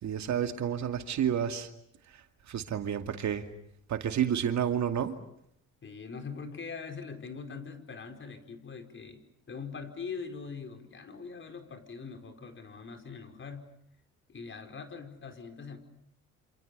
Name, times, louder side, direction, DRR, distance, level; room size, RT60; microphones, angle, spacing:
voice 1, 0.0-1.7 2.1-3.4 3.9-5.2, right 9 dB, 65° right, 7 dB, 2.5 m, -30 dB
voice 2, 5.8-13.7 14.3-15.8, left 5 dB, 40° left, 7 dB, 4.9 m, -42 dB
28.0 x 27.5 x 6.9 m, 0.72 s
cardioid pair, 90°, 30 cm